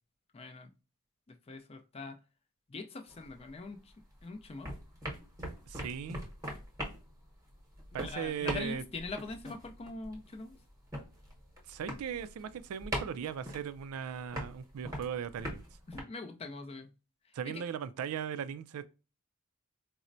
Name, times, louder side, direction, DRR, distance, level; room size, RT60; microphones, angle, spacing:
voice 1, 0.3-0.7 1.3-2.2 2.7-3.9 4.2-4.7 7.9-10.5 15.9-16.9 17.5-17.6, left 3 dB, 25° left, 0.4 m, -43 dB
sound 1, 3.1-4.2 4.5-16.0, equal, 15° right, 0.9 m, -42 dB
voice 2, 5.7-6.2 7.9-8.8 11.7-15.6 17.3-18.9, right 8 dB, 75° right, 0.3 m, -38 dB
4.2 x 2.0 x 2.5 m
head